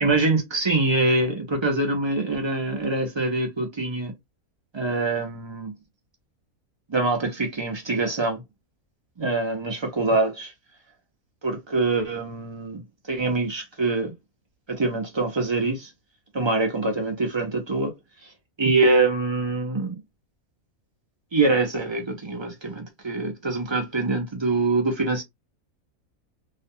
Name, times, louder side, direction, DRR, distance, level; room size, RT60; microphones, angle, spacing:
voice 1, 0.0-4.1 4.7-5.7 6.9-8.4 9.2-10.5 11.4-12.8 13.1-14.1 14.7-15.9 16.3-17.9 18.6-20.0 21.3-25.2, right 3 dB, 45° right, 0.3 m, -24 dB
2.5 x 2.2 x 2.6 m
omnidirectional pair, 1.5 m